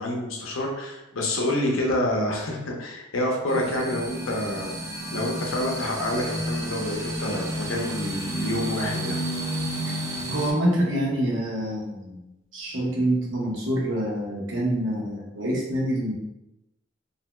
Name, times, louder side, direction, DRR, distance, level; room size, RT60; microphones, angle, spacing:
voice 1, 0.0-4.7 5.1-9.2, left 1 dB, 75° left, 0 dB, 0.6 m, -27 dB
sound 1, 3.5-10.5, right 1 dB, 15° right, 0.3 m, -31 dB
voice 2, 10.3-12.2 12.5-16.1, right 1 dB, 65° right, -4 dB, 0.9 m, -26 dB
2.6 x 2.1 x 3.0 m, 0.94 s
head